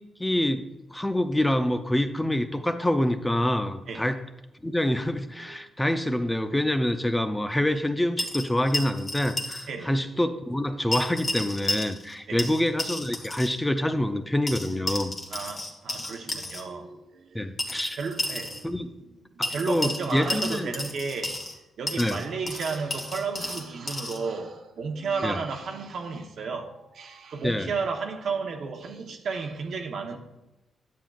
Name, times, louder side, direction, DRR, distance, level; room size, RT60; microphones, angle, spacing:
voice 1, 0.2-4.2 4.6-15.1 17.3-18.0 18.6-18.9 19.4-20.7 22.0-22.2 25.2-25.4 27.4-27.7, left 1 dB, 10° left, 0.5 m, -26 dB
sound 1, 8.2-9.7 9.9-10.0 10.9-12.1 12.4-13.6 14.5-16.6 17.6-18.6 19.4-21.6 21.9-24.2, left 1 dB, 35° left, 1.4 m, -32 dB
voice 2, 9.7-10.9 12.3-12.5 15.3-17.4 18.0-18.7 19.0-19.1 19.5-21.4 21.8-30.2, right 4 dB, 70° right, 0.9 m, -33 dB
10.5 x 7.4 x 2.4 m
cardioid pair, 85°, 0 cm